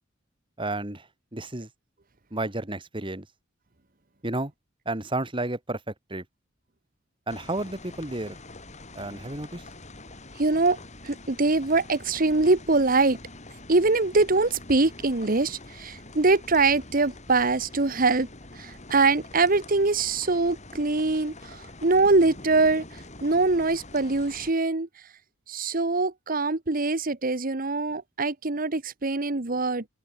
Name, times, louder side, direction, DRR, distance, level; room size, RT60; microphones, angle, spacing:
voice 1, 0.6-1.7 2.3-3.3 4.2-4.5 4.9-6.2 7.3-8.4 8.9-9.6, right 2 dB, 25° right, 2.6 m, -32 dB
sound 1, 7.3-24.5, left 2 dB, 35° left, 4.9 m, -45 dB
voice 2, 10.4-10.8 11.0-13.2 13.7-18.3 18.6-21.3 21.8-22.8 23.2-24.9 25.5-29.9, right 3 dB, 45° right, 1.3 m, -23 dB
head